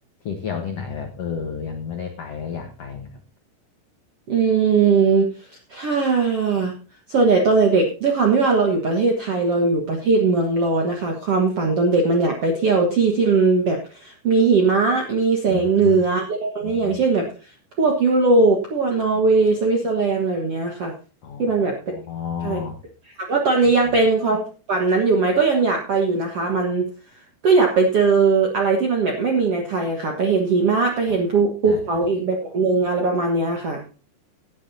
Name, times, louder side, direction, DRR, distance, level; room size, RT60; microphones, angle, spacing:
voice 1, 0.2-3.2 15.5-16.1 16.6-17.0 21.2-22.8 23.6-24.0 31.1-32.0, left 7 dB, 80° left, 5 dB, 1.4 m, -32 dB
voice 2, 4.3-5.3 5.7-6.7 7.1-17.3 17.8-20.9 21.4-21.7 22.4-22.6 23.3-26.9 27.4-33.8, right 4 dB, 65° right, 2 dB, 1.5 m, -19 dB
17.5 x 9.9 x 2.7 m, 0.35 s
omnidirectional pair, 4.9 m